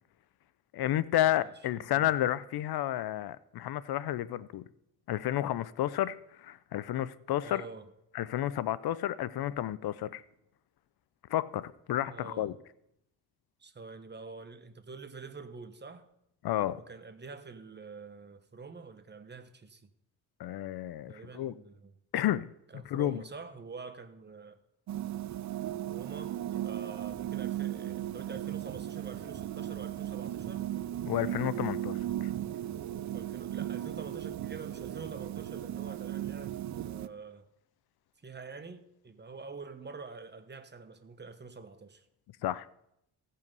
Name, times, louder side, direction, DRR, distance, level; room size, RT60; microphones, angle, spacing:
voice 1, 0.7-4.6 5.1-7.6 8.1-10.2 11.3-12.5 16.4-16.8 20.4-21.5 22.1-22.5 22.9-23.2 31.1-32.0 42.4-42.7, left 13 dB, 70° left, 0.6 m, -31 dB
voice 2, 1.3-2.1 7.4-7.9 12.1-12.5 13.6-16.1 16.7-19.9 21.1-21.9 22.7-24.6 25.8-30.7 33.1-37.5 38.2-42.1, right 4 dB, 25° right, 1.1 m, -46 dB
sound 1, 24.9-37.1, right 12 dB, 45° right, 0.5 m, -36 dB
sound 2, 26.2-36.2, right 7 dB, 80° right, 1.4 m, -51 dB
16.0 x 5.6 x 5.3 m
cardioid pair, 95°, 39 cm